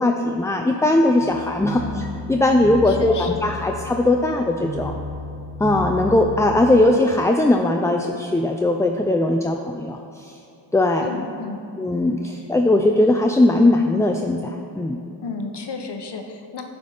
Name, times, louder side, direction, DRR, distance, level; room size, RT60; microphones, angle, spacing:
voice 1, 0.0-1.8 2.3-4.9 5.6-10.4 10.7-11.1 11.8-15.0, left 2 dB, 5° left, 3 dB, 0.3 m, -19 dB
sound 1, 1.2-6.8, left 2 dB, 30° right, 1.1 m, -33 dB
voice 2, 1.8-2.1 2.9-3.5 11.0-11.7 15.2-16.6, left 4 dB, 55° left, 4 dB, 0.9 m, -33 dB
9.2 x 3.4 x 5.5 m, 2.6 s
cardioid pair, 40°, 48 cm